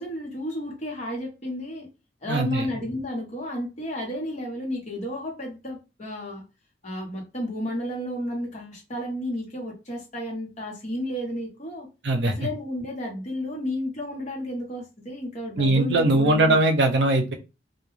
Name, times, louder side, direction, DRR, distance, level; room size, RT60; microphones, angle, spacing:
voice 1, 0.0-1.9 2.2-6.4 6.8-11.9 12.3-16.6, left 1 dB, 40° left, 1.0 m, -32 dB
voice 2, 2.3-2.7 12.0-12.3 15.6-17.3, right 2 dB, 70° right, 0.5 m, -20 dB
2.2 x 2.2 x 3.1 m
head